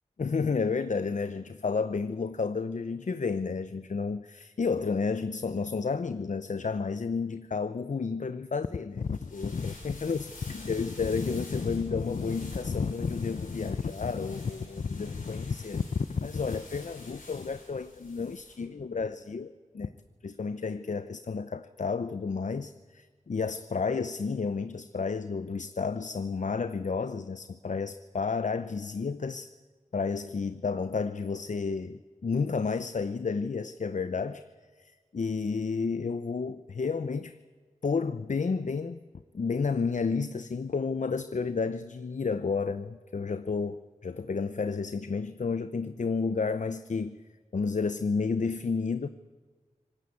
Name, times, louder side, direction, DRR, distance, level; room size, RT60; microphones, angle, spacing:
voice 1, 0.2-15.8 16.1-19.9 20.2-29.5 29.9-34.4 34.8-37.4 37.8-39.0 39.3-47.2 47.5-49.1, left 5 dB, 65° left, 12 dB, 0.7 m, -31 dB
sound 1, 9.0-18.5, left 2 dB, 85° left, 6.5 m, -49 dB
25.5 x 18.5 x 8.5 m, 1.4 s
cardioid pair, 45°, 14 cm